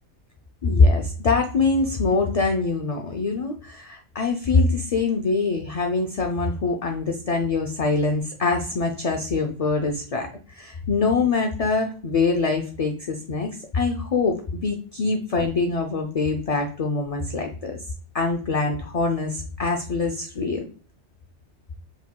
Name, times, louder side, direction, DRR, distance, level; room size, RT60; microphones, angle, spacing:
voice 1, 0.6-17.8 18.1-20.7, left 3 dB, 50° left, 3 dB, 0.4 m, -24 dB
4.8 x 3.7 x 2.2 m, 0.40 s
omnidirectional pair, 1.2 m